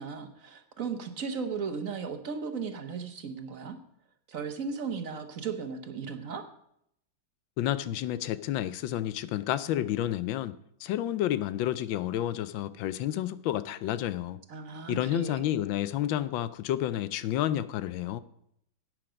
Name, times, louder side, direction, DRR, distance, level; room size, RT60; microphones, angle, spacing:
voice 1, 0.0-3.8 4.3-6.5 14.5-15.4, right 5 dB, 50° right, 1.2 m, -36 dB
voice 2, 7.6-14.4 14.9-18.2, left 12 dB, 80° left, 1.3 m, -30 dB
11.0 x 9.0 x 5.1 m
omnidirectional pair, 2.2 m